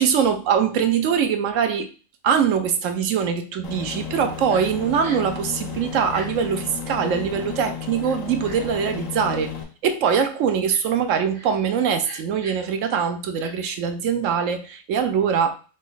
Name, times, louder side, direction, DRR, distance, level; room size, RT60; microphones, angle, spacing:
voice 1, 0.0-1.9 2.2-9.5 9.8-15.6, right 7 dB, 75° right, 8 dB, 1.0 m, -22 dB
Aircraft, 3.6-9.6, left 7 dB, 80° left, 1.5 m, -33 dB
Crying sobbing, 4.5-4.7 5.0-5.3 6.1-6.3 6.9-7.1 8.0-8.7 9.3-9.4 10.0-10.3 10.7-10.9 11.3-11.5 12.0-12.7 13.4-13.5, right 2 dB, 50° right, 0.9 m, -39 dB
4.1 x 3.1 x 3.8 m, 0.36 s
omnidirectional pair, 1.4 m